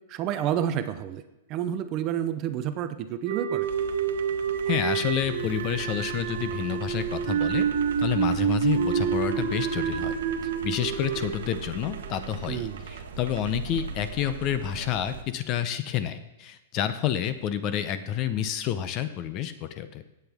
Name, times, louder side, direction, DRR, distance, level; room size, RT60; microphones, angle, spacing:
voice 1, 0.1-1.2 1.5-3.7 12.5-12.8, right 10 dB, 25° right, 11 dB, 0.6 m, -29 dB
sound 1, 3.3-12.5, right 7 dB, 45° right, 1.3 m, -28 dB
sound 2, 3.6-15.2, right 6 dB, 80° right, 1.3 m, -40 dB
voice 2, 4.7-7.7 8.0-10.2 10.6-20.0, left 10 dB, 25° left, 12 dB, 0.6 m, -29 dB
17.0 x 8.0 x 3.5 m, 0.98 s
supercardioid pair, 175°, 0 cm